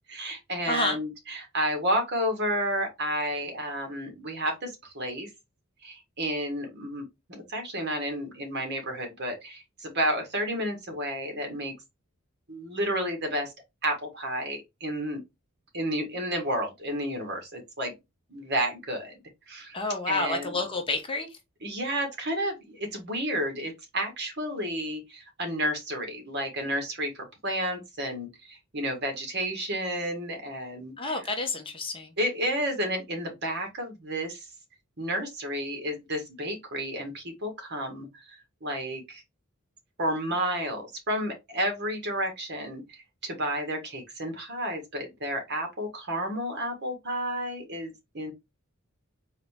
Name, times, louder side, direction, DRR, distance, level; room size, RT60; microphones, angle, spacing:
voice 1, 0.1-5.3 5.8-7.0 7.3-11.7 12.5-13.5 13.8-15.2 15.7-17.9 18.3-19.1 19.5-19.8 20.1-20.5 21.6-31.1 32.2-34.4 35.0-39.2 40.0-48.3, equal, 55° right, 1.5 m, -31 dB
voice 2, 0.7-1.0 19.7-21.4 31.0-32.1, left 2 dB, 25° left, 0.8 m, -29 dB
4.1 x 2.7 x 3.5 m
head